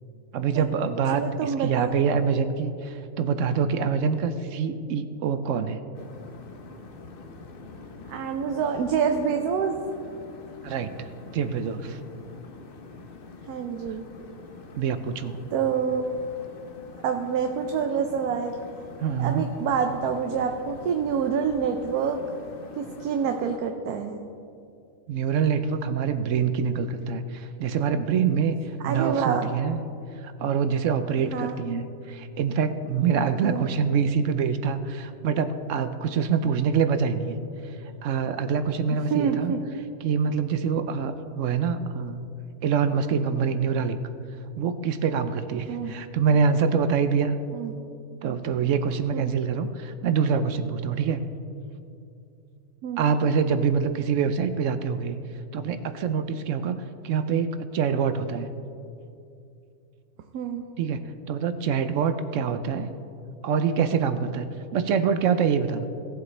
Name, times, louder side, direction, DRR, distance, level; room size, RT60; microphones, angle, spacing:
voice 1, 0.3-5.8 10.6-12.0 14.8-15.4 19.0-19.4 25.1-29.8 30.2-37.4 37.6-37.8 38.0-39.5 40.0-42.3 42.6-44.0 44.6-47.3 48.2-51.2 53.0-55.2 55.5-58.5 60.8-61.0 61.3-62.9 63.4-64.5 64.7-65.9, right 6 dB, 65° right, 11 dB, 0.8 m, -25 dB
voice 2, 1.1-2.0 8.1-9.8 13.5-14.0 15.5-16.2 17.0-18.6 19.2-22.2 22.8-24.2 28.8-29.5 31.3-31.6 33.4-33.7 39.1-39.6 45.7-45.9 47.5-47.7 49.1-49.3 52.8-53.0 60.3-60.6, right 7 dB, 85° right, 5 dB, 1.2 m, -27 dB
sound 1, 5.9-23.6, left 4 dB, 45° left, 0.8 m, -45 dB
17.0 x 8.0 x 3.2 m, 2.6 s
omnidirectional pair, 1.6 m